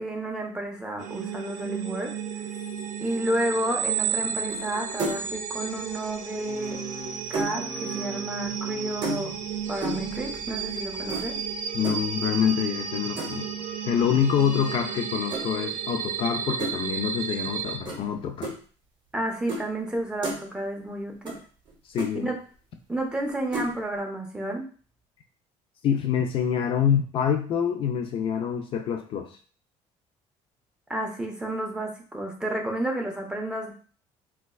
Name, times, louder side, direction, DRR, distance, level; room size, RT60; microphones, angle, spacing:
voice 1, 0.0-2.2 3.0-6.8 7.3-9.3 9.7-11.4 19.1-21.4 22.1-22.3 22.9-24.6 30.9-33.7, right 1 dB, 5° right, 1 dB, 0.5 m, -31 dB
sound 1, 1.0-17.8, right 7 dB, 80° right, 0.5 m, -33 dB
sound 2, 4.5-4.7 5.0-5.3 6.6-7.6 9.0-9.5 9.8-10.1 11.1-11.3 11.8-12.1 13.2-13.5 15.3-15.4 16.6-16.8 17.9-18.0 18.4-18.5 19.5-19.6 20.0-20.4 21.3-21.4 21.7-21.8 22.0-22.1 23.5-23.7, right 2 dB, 40° right, 0.9 m, -32 dB
sound 3, 6.3-11.6 12.0-12.6 13.0-13.7 14.1-14.8 15.2-15.9 16.4-16.9 17.5-17.6, left 1 dB, 80° left, 0.7 m, -46 dB
voice 2, 11.7-13.5 13.8-18.5 21.9-22.3 25.8-29.3, left 8 dB, 45° left, 5 dB, 0.4 m, -26 dB
3.9 x 2.3 x 2.3 m, 0.41 s
cardioid pair, 145°, 12 cm